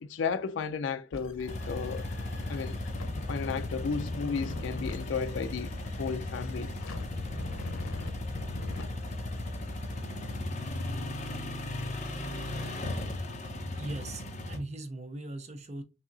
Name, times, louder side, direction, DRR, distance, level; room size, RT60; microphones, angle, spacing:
voice 1, 0.0-2.0 2.5-2.8 3.3-5.7 6.0-6.7, left 5 dB, 60° left, 0.4 m, -33 dB
sound 1, 1.1-8.8, left 2 dB, 85° left, 0.8 m, -42 dB
sound 2, 1.5-14.6, left 1 dB, 35° left, 0.8 m, -36 dB
voice 2, 13.7-15.8, right 2 dB, 30° right, 0.6 m, -39 dB
6.1 x 2.7 x 2.6 m
head